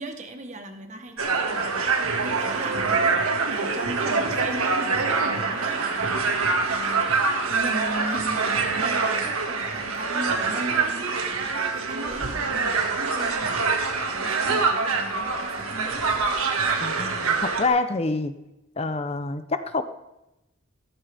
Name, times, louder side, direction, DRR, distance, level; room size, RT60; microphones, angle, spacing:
voice 1, 0.0-7.1 7.5-16.1, right 1 dB, 35° right, 6 dB, 1.2 m, -38 dB
sound 1, 1.2-17.7, right 4 dB, 85° right, 1.9 m, -25 dB
voice 2, 16.8-18.4 18.8-19.8, left 3 dB, 30° left, 10 dB, 0.6 m, -26 dB
15.0 x 13.5 x 3.4 m, 0.92 s
head